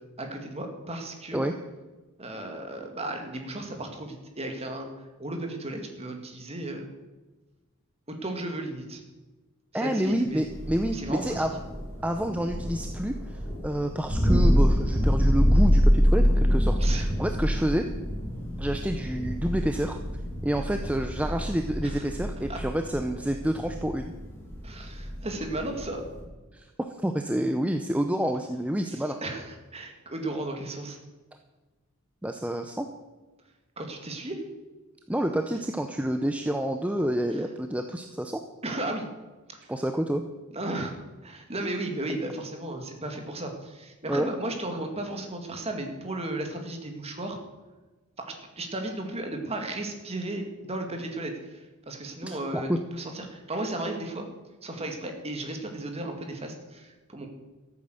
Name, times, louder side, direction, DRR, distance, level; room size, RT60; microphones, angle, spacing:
voice 1, 0.2-1.4 2.2-4.9 5.2-6.9 8.1-9.0 9.7-10.5 10.9-11.3 16.8-17.1 21.8-22.0 22.5-22.6 24.6-26.0 28.9-31.0 33.8-34.4 38.6-39.1 39.5-39.7 40.5-41.0 41.2-47.4 48.2-54.3 54.6-57.3, right 1 dB, 30° right, 4 dB, 2.1 m, -35 dB
voice 2, 9.7-11.6 12.0-17.9 18.6-20.0 20.4-24.1 26.5-29.2 32.2-32.9 35.1-38.4 39.7-40.2 44.1-44.3 52.2-52.8, right 1 dB, 5° right, 6 dB, 0.6 m, -28 dB
Thunder, 10.4-26.2, equal, 10° left, 5.1 m, -26 dB
14.0 x 8.8 x 7.7 m, 1.2 s
head